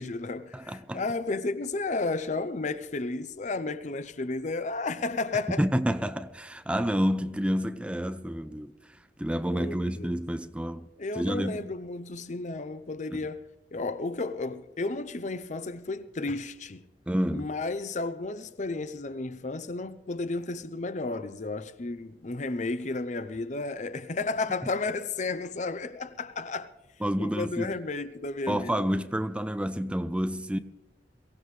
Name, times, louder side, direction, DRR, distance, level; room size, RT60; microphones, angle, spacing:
voice 1, 0.0-5.6 9.5-10.1 11.0-16.8 17.3-26.7 27.2-28.9, left 3 dB, 45° left, 0.7 m, -33 dB
voice 2, 0.5-1.0 5.6-8.7 9.2-10.9 11.2-11.7 13.1-13.2 17.1-17.5 27.0-27.8 28.5-30.6, equal, 5° right, 0.4 m, -29 dB
22.5 x 16.5 x 3.3 m
head